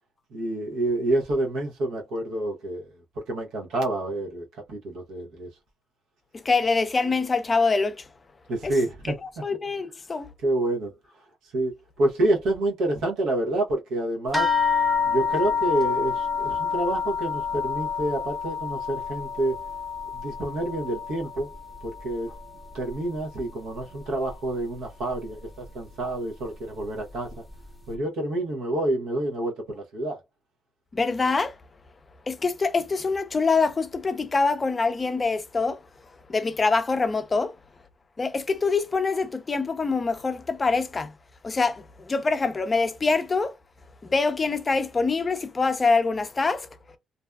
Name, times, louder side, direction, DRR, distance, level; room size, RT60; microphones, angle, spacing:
voice 1, 0.3-2.9 3.2-5.5 8.5-9.2 10.4-10.9 11.5-14.5 15.1-19.6 20.1-21.5 21.8-22.3 22.7-27.4 27.9-30.2, right 1 dB, 85° right, 0.8 m, -28 dB
voice 2, 6.4-8.1 8.6-8.7 9.1-9.2 9.4-10.3 30.9-31.6 32.3-35.8 36.3-37.5 38.2-41.1 41.4-43.6 44.0-46.7, left 4 dB, 30° left, 0.4 m, -24 dB
sound 1, 14.3-23.2 23.5-24.4 25.1-25.2 25.6-25.8, left 6 dB, 10° right, 0.7 m, -28 dB
2.6 x 2.2 x 2.2 m
cardioid pair, 90°, 0 cm